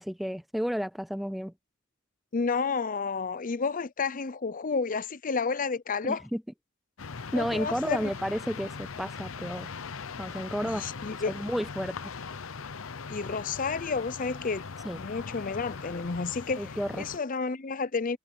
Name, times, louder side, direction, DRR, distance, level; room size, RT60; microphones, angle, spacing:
voice 1, 0.0-1.5 6.0-6.4 7.3-9.7 10.2-10.8 11.3-11.9 14.8-15.0 16.6-17.1, equal, ahead, 0.3 m, -31 dB
voice 2, 2.3-6.2 7.3-8.1 10.6-11.4 13.1-14.7 15.0-16.7 17.0-18.2, left 4 dB, 40° left, 0.6 m, -31 dB
sound 1, 7.0-17.2, left 5 dB, 75° left, 0.8 m, -40 dB
head